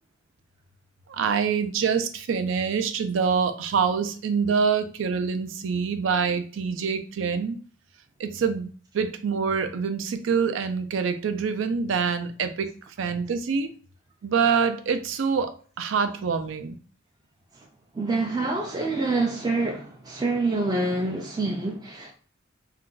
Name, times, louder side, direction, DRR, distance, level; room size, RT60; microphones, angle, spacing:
voice 1, 1.1-7.6 8.2-12.7 13.0-13.7 14.2-16.8, right 6 dB, 85° right, 0.4 m, -25 dB
voice 2, 17.9-22.1, right 3 dB, 20° right, 0.3 m, -26 dB
2.4 x 2.2 x 3.8 m
head